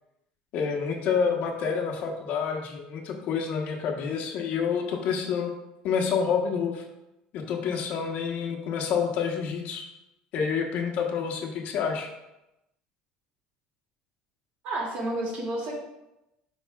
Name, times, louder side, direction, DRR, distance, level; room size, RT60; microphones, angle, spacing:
voice 1, 0.5-5.5 5.8-6.8 7.3-9.8 10.3-12.1, left 6 dB, 60° left, 2 dB, 1.1 m, -28 dB
voice 2, 14.6-15.7, right 1 dB, 60° right, -2 dB, 2.4 m, -30 dB
9.1 x 4.8 x 2.4 m, 0.93 s
supercardioid pair, 105°, 3 cm